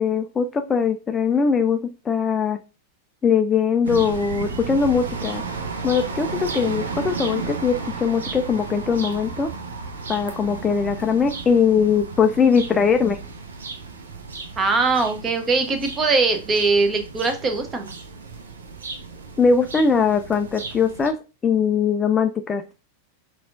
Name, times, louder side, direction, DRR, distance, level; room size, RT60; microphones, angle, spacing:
voice 1, 0.0-2.6 3.2-5.4 5.8-9.5 10.1-13.2 19.4-21.2 21.4-22.6, left 6 dB, 20° left, 7 dB, 0.3 m, -21 dB
sound 1, 3.8-21.1, right 4 dB, 70° right, 0.6 m, -34 dB
voice 2, 14.6-17.9, right 3 dB, 20° right, 6 dB, 0.8 m, -21 dB
5.8 x 2.4 x 2.5 m, 0.30 s
figure-of-eight pair, 90°, 0 cm